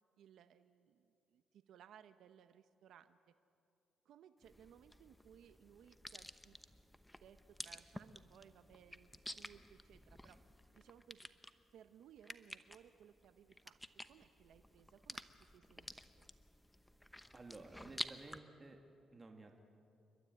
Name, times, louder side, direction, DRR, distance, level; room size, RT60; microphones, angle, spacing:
voice 1, 0.2-3.3 4.0-6.6 7.2-10.4 10.7-11.3 11.7-13.8 14.1-15.9 16.2-16.3, right 9 dB, 75° right, 11 dB, 0.7 m, -62 dB
sound 1, 4.4-18.4, left 1 dB, 10° left, 0.9 m, -52 dB
voice 2, 17.3-18.8 19.1-19.6, right 3 dB, 25° right, 3 dB, 1.9 m, -54 dB
29.5 x 12.5 x 9.5 m, 2.6 s
cardioid pair, 90°, 0 cm